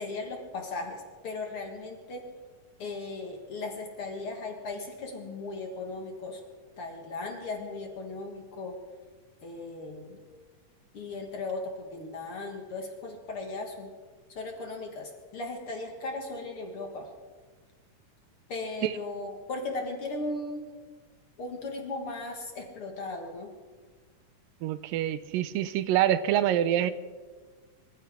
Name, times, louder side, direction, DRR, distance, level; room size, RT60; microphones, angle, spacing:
voice 1, 0.0-2.3 2.8-6.4 6.8-8.7 9.4-10.2 10.9-13.9 14.3-17.1 18.5-20.7 21.4-23.5, left 3 dB, 45° left, 2 dB, 2.2 m, -37 dB
voice 2, 24.6-26.9, right 11 dB, 85° right, 14 dB, 2.4 m, -26 dB
25.0 x 14.5 x 3.6 m, 1.4 s
omnidirectional pair, 3.9 m